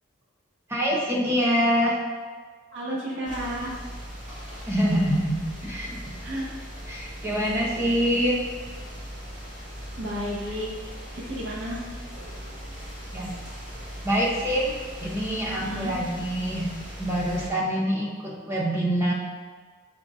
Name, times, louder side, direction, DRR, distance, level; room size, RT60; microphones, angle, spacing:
voice 1, 0.7-2.0 4.7-5.4 5.6-6.0 6.9-8.4 13.1-13.3 14.0-14.7 15.0-16.7 17.0-19.1, equal, 15° right, -4 dB, 0.8 m, -25 dB
voice 2, 2.7-3.8 6.2-6.5 10.0-10.8 11.1-11.9 15.6-16.0, equal, 65° right, -5 dB, 0.9 m, -32 dB
sound 1, 3.2-17.5, equal, 40° right, 1.5 m, -39 dB
5.6 x 3.8 x 2.5 m, 1.5 s
head